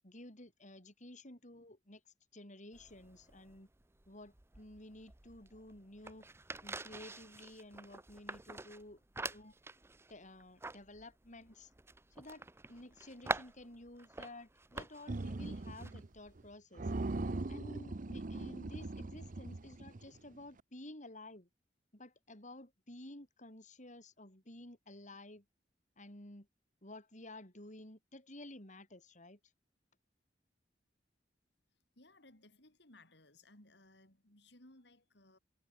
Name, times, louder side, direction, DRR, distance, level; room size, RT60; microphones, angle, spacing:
voice 1, 0.0-3.7 4.1-6.3 6.6-9.5 10.1-11.7 12.1-16.9 17.5-21.5 21.9-25.4 26.0-26.5 26.8-29.4, left 1 dB, 45° left, 7.9 m, -53 dB
sound 1, 2.7-16.5, right 3 dB, 15° right, 0.7 m, -47 dB
sound 2, 15.1-16.1 16.4-16.5 16.8-20.2, right 2 dB, 50° right, 0.8 m, -40 dB
voice 2, 32.0-35.4, left 2 dB, 65° left, 7.2 m, -62 dB
head